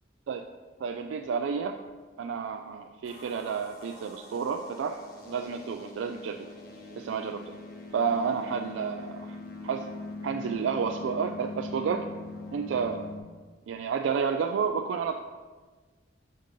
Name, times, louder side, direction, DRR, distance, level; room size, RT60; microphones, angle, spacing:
voice 1, 0.8-1.8 2.2-6.5 7.0-7.5 7.9-9.4 9.6-9.9 10.2-12.1 12.5-13.1 13.7-15.2, right 6 dB, 80° right, 5 dB, 0.3 m, -30 dB
sound 1, 3.1-13.2, left 3 dB, 50° left, 1.0 m, -42 dB
6.5 x 5.3 x 3.7 m, 1.4 s
head